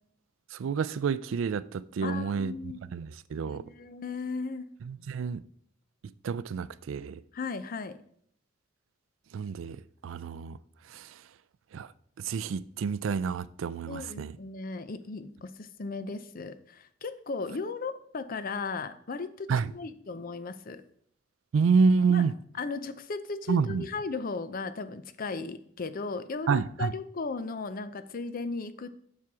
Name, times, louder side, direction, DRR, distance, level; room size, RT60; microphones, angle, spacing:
voice 1, 0.5-2.5 2.9-3.6 4.8-5.4 6.2-7.2 9.3-10.6 10.9-11.1 11.7-11.9 12.2-14.3 19.5-19.7 21.5-22.3 23.5-23.8 26.5-26.9, right 5 dB, 85° right, 0.4 m, -28 dB
voice 2, 2.0-2.8 3.5-4.7 7.3-8.0 13.9-20.8 22.1-22.3 22.6-28.9, left 4 dB, 45° left, 0.5 m, -36 dB
7.5 x 5.7 x 4.7 m
head